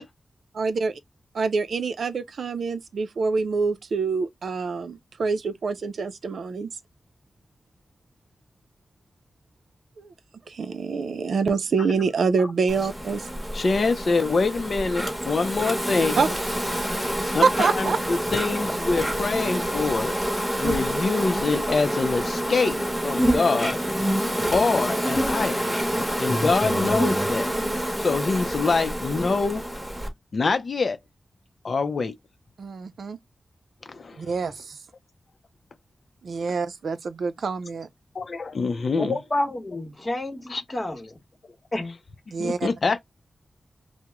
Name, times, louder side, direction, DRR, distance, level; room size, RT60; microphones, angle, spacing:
voice 1, 0.5-1.0 1.3-6.7 10.0-10.1 10.5-13.3 16.2-16.3 17.4-18.0 32.6-33.2 34.2-34.8 36.2-37.9 42.3-42.7, right 4 dB, 85° right, 0.4 m, -26 dB
Insect, 12.7-30.1, equal, 5° right, 1.0 m, -27 dB
voice 2, 13.5-16.2 17.2-20.2 20.6-22.8 23.0-23.8 24.5-25.6 26.2-27.5 28.0-29.6 30.3-31.0 31.6-32.1 33.9-34.3 38.1-39.2 40.5-40.6 42.4-43.0, left 4 dB, 55° left, 0.5 m, -25 dB
voice 3, 39.0-41.2 41.7-41.9, left 2 dB, 25° left, 1.0 m, -29 dB
2.9 x 2.0 x 3.4 m
wide cardioid pair, 150°, 0 cm